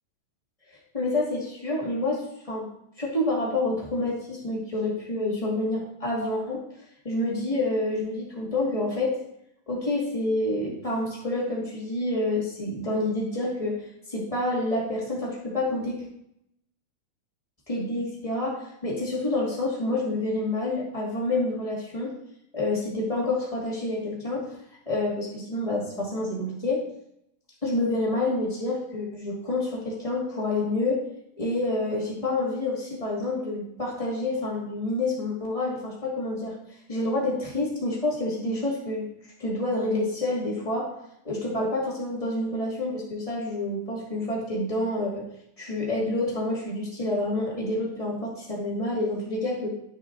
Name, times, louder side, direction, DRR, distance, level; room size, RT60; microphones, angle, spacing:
voice 1, 0.9-2.6 3.0-6.6 7.0-9.1 9.7-13.8 14.1-16.0 17.7-18.5 18.8-22.1 22.5-24.5 24.8-26.8 27.6-31.0 31.4-36.5 36.9-39.0 39.4-40.9 41.2-45.2 45.6-49.7, left 2 dB, 25° left, -5 dB, 0.7 m, -28 dB
12.0 x 6.7 x 4.0 m, 0.76 s
omnidirectional pair, 5.1 m